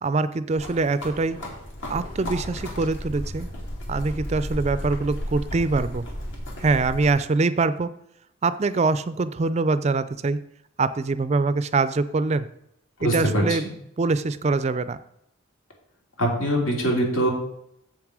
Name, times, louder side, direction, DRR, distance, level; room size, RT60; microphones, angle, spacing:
voice 1, 0.0-1.4 1.9-3.5 3.9-6.0 6.6-7.9 8.4-10.4 10.8-12.5 13.0-13.6 14.0-15.0, right 3 dB, 30° right, 14 dB, 0.4 m, -24 dB
sound 1, 0.5-7.1, equal, 60° left, 2.5 m, -34 dB
voice 2, 13.0-13.6 16.2-17.3, right 1 dB, 80° left, 0 dB, 2.6 m, -23 dB
7.7 x 7.2 x 4.8 m, 0.75 s
head